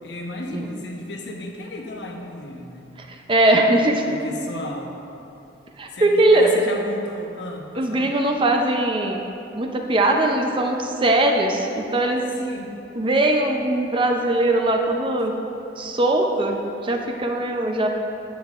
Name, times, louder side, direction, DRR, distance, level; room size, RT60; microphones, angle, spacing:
voice 1, 0.0-2.9 4.0-4.9 5.9-8.1 12.3-12.7, left 1 dB, 65° left, 2 dB, 0.8 m, -34 dB
voice 2, 3.1-4.2 5.8-6.5 7.7-9.2 9.6-12.2 13.0-15.3 15.8-17.9, right 1 dB, 25° right, 3 dB, 0.5 m, -20 dB
10.0 x 8.3 x 2.4 m, 2.8 s
head